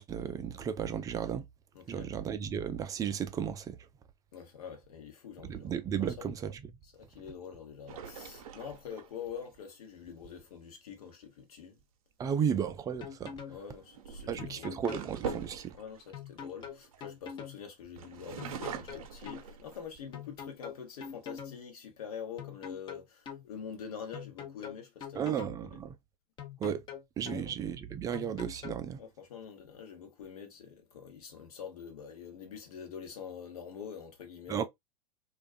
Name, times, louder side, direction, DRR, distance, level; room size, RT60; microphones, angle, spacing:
voice 1, 0.0-1.5 1.9-3.8 5.4-6.5 12.2-13.4 14.3-15.8 25.1-25.9 26.6-26.8 27.2-29.0 34.5-34.6, right 8 dB, 20° right, 0.3 m, -34 dB
voice 2, 1.7-2.1 4.3-5.7 6.0-6.3 6.8-11.8 13.5-14.8 15.7-25.8 27.3-27.6 29.0-34.7, left 7 dB, 70° left, 1.0 m, -45 dB
sound 1, 7.9-9.5 12.4-12.7 13.7-17.5 18.0-20.1 20.6-20.7 21.1-21.6, right 7 dB, 65° right, 0.6 m, -43 dB
sound 2, 12.7-13.6 14.4-15.4 16.1-17.6 18.4-19.4 20.1-21.6 22.4-23.4 24.1-25.6 26.4-27.4 28.1-28.8, left 8 dB, 25° left, 0.6 m, -44 dB
2.4 x 2.2 x 2.3 m
hypercardioid pair, 100°, 20 cm